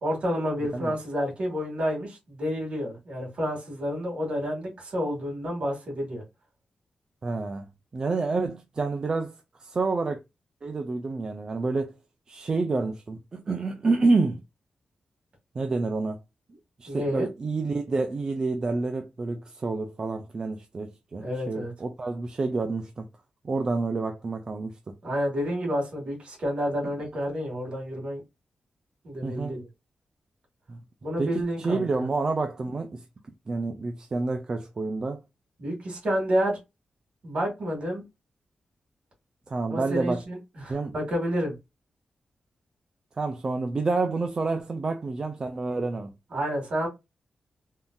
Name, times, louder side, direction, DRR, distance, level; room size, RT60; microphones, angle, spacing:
voice 1, 0.0-6.2 16.9-17.3 21.2-21.7 25.0-28.2 29.0-29.7 31.0-32.1 35.6-36.6 37.2-38.0 39.7-41.6 46.3-46.9, equal, 55° right, 1.8 m, -29 dB
voice 2, 7.2-7.7 7.9-10.2 10.6-12.0 12.3-14.4 15.5-16.2 16.8-23.1 23.4-24.7 29.2-29.5 30.7-30.8 31.2-33.0 33.5-35.2 39.5-40.2 40.7-40.9 43.2-46.1, right 3 dB, 30° right, 0.3 m, -28 dB
3.6 x 2.6 x 2.2 m
wide cardioid pair, 175°, 2 cm